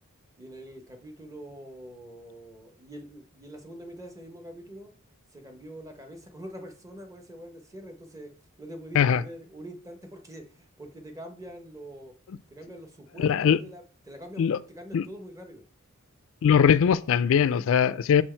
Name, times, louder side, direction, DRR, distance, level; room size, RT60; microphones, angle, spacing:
voice 1, 0.4-4.9 5.3-8.3 8.6-12.1 12.5-15.6, right 1 dB, 15° right, 0.9 m, -44 dB
voice 2, 13.2-13.6 14.4-14.6 14.9-15.0 16.4-18.2, left 7 dB, 60° left, 0.3 m, -21 dB
6.0 x 4.5 x 4.3 m
head